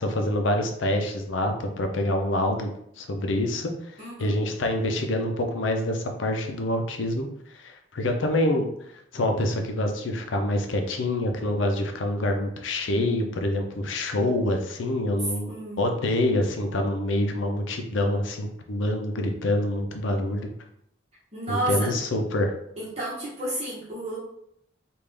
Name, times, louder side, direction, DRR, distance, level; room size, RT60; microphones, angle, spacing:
voice 1, 0.0-2.7 3.0-8.7 9.1-20.5 21.5-22.5, left 1 dB, 75° left, 4 dB, 0.6 m, -26 dB
voice 2, 4.0-4.3 15.5-15.8 21.3-21.9 22.8-24.2, right 1 dB, 35° right, -7 dB, 1.0 m, -31 dB
3.5 x 2.5 x 3.3 m, 0.74 s
head